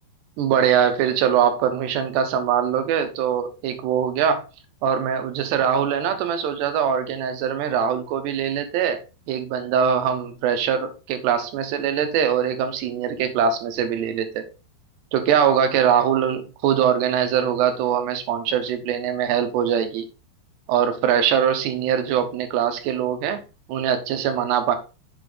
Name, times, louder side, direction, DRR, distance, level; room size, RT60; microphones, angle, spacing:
voice 1, 0.4-4.4 4.8-9.0 9.3-14.4 15.1-20.1 20.7-23.4 23.7-24.8, right 8 dB, 85° right, 3.2 m, -22 dB
7.4 x 5.2 x 3.8 m
omnidirectional pair, 4.8 m